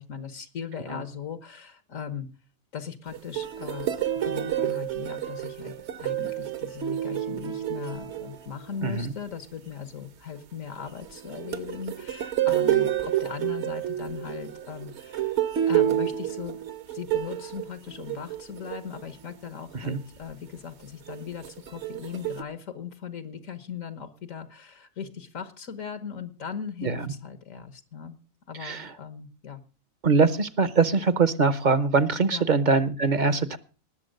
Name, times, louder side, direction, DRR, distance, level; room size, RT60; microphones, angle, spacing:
voice 1, 0.0-2.3 2.7-15.4 15.7-16.6 16.9-28.2 28.5-29.6 32.3-32.5, left 7 dB, 75° left, 11 dB, 1.6 m, -38 dB
sound 1, 3.1-8.9 10.8-19.0 19.7-19.9 21.1-22.4, right 12 dB, 60° right, 1.1 m, -29 dB
voice 2, 8.8-9.1 19.7-20.0 26.8-27.1 28.6-28.9 30.0-33.6, right 4 dB, 40° right, 16 dB, 0.8 m, -23 dB
19.5 x 7.1 x 6.5 m, 0.36 s
omnidirectional pair, 1.4 m